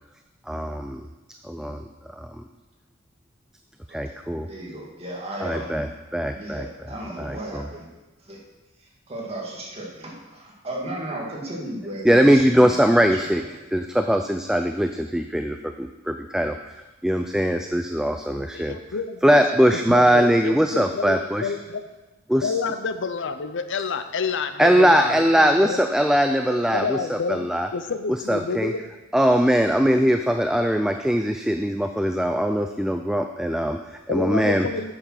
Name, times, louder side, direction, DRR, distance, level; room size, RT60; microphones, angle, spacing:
voice 1, 0.5-1.1 1.4-1.8 2.1-2.4 3.9-4.5 5.4-7.7 12.0-18.8 19.2-21.5 22.3-22.5 24.6-27.7 28.1-28.7 29.1-34.7, equal, 5° right, 6 dB, 0.3 m, -21 dB
voice 2, 3.9-4.2 4.5-5.9 6.3-7.9 8.2-8.4 9.1-13.2 13.7-13.8, right 1 dB, 30° right, -3 dB, 2.2 m, -35 dB
voice 3, 18.5-21.8 22.4-25.8 26.7-28.8 34.1-34.9, left 5 dB, 60° left, 10 dB, 0.6 m, -29 dB
8.7 x 7.3 x 5.8 m, 1.1 s
head